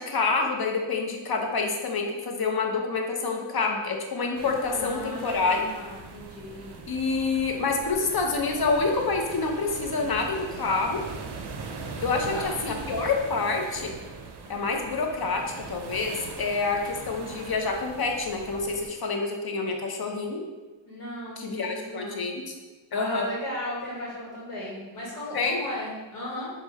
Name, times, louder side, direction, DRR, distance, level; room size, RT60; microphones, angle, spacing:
voice 1, 0.0-5.6 6.9-11.0 12.0-13.9 14.5-20.4 21.4-22.5 22.9-23.3 25.3-25.7, left 4 dB, 50° left, 2 dB, 0.7 m, -27 dB
sound 1, 4.3-18.9, right 4 dB, 55° right, 0.5 m, -41 dB
voice 2, 4.7-6.9 12.1-12.6 20.8-22.2 22.9-26.5, left 1 dB, 85° left, -6 dB, 1.0 m, -36 dB
4.7 x 2.2 x 3.5 m, 1.2 s
wide cardioid pair, 50°, 48 cm